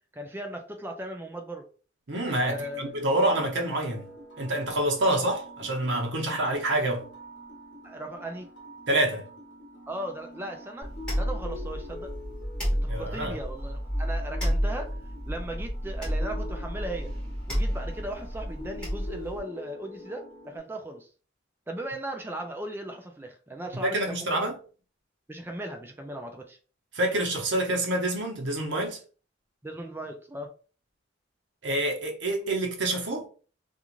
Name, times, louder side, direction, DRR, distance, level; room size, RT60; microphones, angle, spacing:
voice 1, 0.1-1.7 2.4-3.0 7.8-8.5 9.9-10.9 11.2-12.1 12.7-15.0 15.3-17.1 17.5-21.1 21.7-24.4 25.3-26.6 29.6-30.5, right 1 dB, 10° right, 0.4 m, -37 dB
voice 2, 2.1-4.1 4.4-7.0 8.9-9.3 12.9-13.4 23.8-24.6 26.9-29.0 31.6-33.3, right 1 dB, 70° right, 0.8 m, -27 dB
sound 1, 2.4-20.6, left 1 dB, 65° left, 1.0 m, -46 dB
sound 2, 10.8-19.4, equal, 5° left, 1.3 m, -31 dB
2.5 x 2.4 x 2.9 m
head